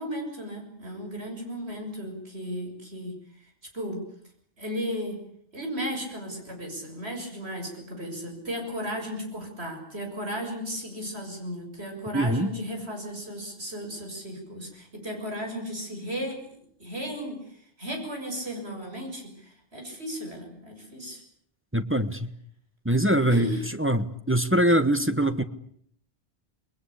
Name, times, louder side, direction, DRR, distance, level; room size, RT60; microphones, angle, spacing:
voice 1, 0.0-3.2 3.7-4.0 4.6-5.2 5.5-21.2 23.3-23.7, equal, 80° right, 3 dB, 7.2 m, -35 dB
voice 2, 12.1-12.5 21.7-22.3 22.8-23.5 23.8-25.4, right 1 dB, 10° right, 9 dB, 1.2 m, -23 dB
28.0 x 21.5 x 8.4 m, 0.66 s
omnidirectional pair, 1.1 m